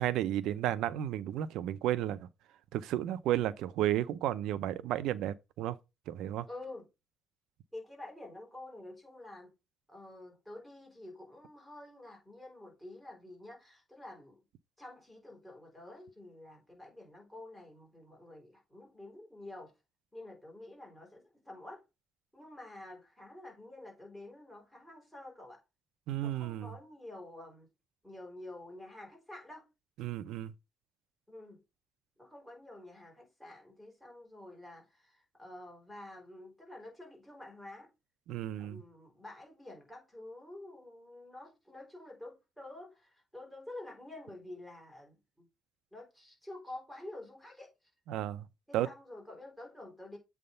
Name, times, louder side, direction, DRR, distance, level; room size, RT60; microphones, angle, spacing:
voice 1, 0.0-2.3 2.7-5.8 6.1-6.5 26.1-26.7 30.0-30.5 38.3-38.8 48.1-48.5 48.7-48.9, right 12 dB, 80° right, 0.6 m, -33 dB
voice 2, 6.5-6.9 7.7-9.5 9.9-14.4 14.8-19.7 20.1-21.8 22.3-25.6 26.2-27.7 28.0-29.7 31.3-31.6 32.2-37.9 38.6-45.5 45.9-47.7 48.7-50.2, left 1 dB, 5° left, 4.5 m, -49 dB
7.8 x 3.5 x 5.5 m
cardioid pair, 140°, 0 cm